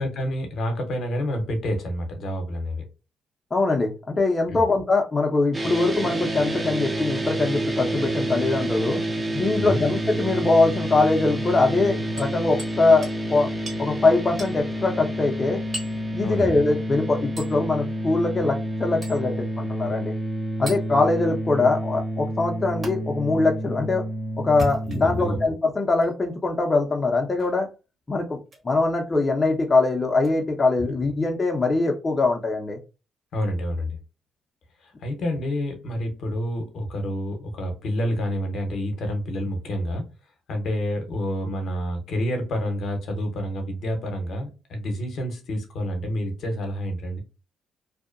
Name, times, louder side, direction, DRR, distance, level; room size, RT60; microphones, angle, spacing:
voice 1, 0.0-2.8 4.5-4.6 9.5-9.8 16.2-16.5 24.9-25.4 33.3-34.0 34.8-40.0 40.5-47.2, equal, 65° left, 0.7 m, -28 dB
voice 2, 3.5-9.0 9.3-13.5 13.8-15.6 16.1-20.1 20.6-24.0 24.4-27.7 28.1-28.4 28.6-32.8, left 3 dB, 30° left, 0.5 m, -22 dB
sound 1, 5.5-25.5, right 1 dB, 20° right, 0.5 m, -29 dB
Hammer, 12.2-12.8 13.0-13.2 13.7-13.8 14.4-14.6 15.7-16.0 17.4-17.6 19.0-19.2 20.7-20.8 22.8-22.9 24.4-25.2 26.0-26.1 27.4-27.6 28.5-28.7 30.2-30.3, equal, 40° right, 1.2 m, -36 dB
2.6 x 2.1 x 2.4 m
cardioid pair, 90°, 0 cm